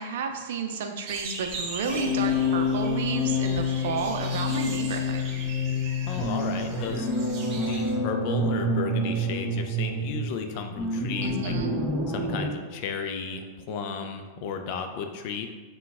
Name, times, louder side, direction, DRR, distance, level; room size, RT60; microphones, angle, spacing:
voice 1, 0.0-5.2 11.2-11.8, right 5 dB, 60° right, 5 dB, 0.5 m, -32 dB
sound 1, 1.1-7.9, right 3 dB, 40° right, 0.9 m, -39 dB
sound 2, 1.9-12.5, left 2 dB, 5° left, 1.3 m, -28 dB
voice 2, 6.1-7.1 7.5-11.5 12.1-15.5, left 5 dB, 50° left, 5 dB, 0.5 m, -34 dB
5.7 x 2.2 x 3.5 m, 1.3 s
figure-of-eight pair, 95°, 0 cm